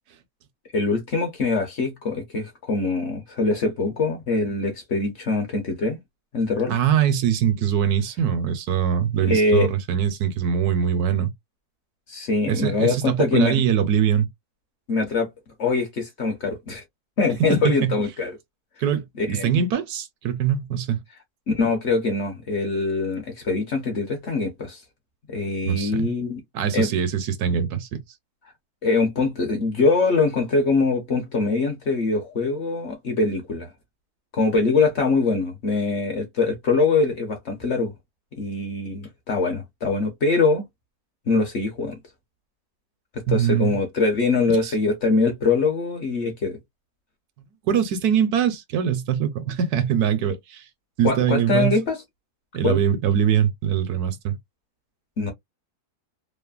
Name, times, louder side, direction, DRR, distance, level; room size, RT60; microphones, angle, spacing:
voice 1, 0.7-6.0 6.3-6.8 9.3-9.7 12.1-13.6 14.9-15.3 15.6-16.8 17.2-18.3 19.2-19.6 21.5-24.8 25.3-26.4 26.7-26.9 28.8-33.7 34.3-37.9 38.3-40.6 41.3-42.0 43.1-46.6 51.0-52.0 52.6-52.8 55.2-55.3, left 3 dB, 55° left, 0.9 m, -23 dB
voice 2, 6.7-11.3 12.5-14.3 17.5-17.9 18.8-21.0 25.7-26.1 26.5-28.0 43.3-43.7 44.6-44.7 47.7-50.6 51.0-51.8 52.5-54.4, right 8 dB, 75° right, 1.2 m, -22 dB
3.2 x 2.1 x 2.3 m
omnidirectional pair, 1.7 m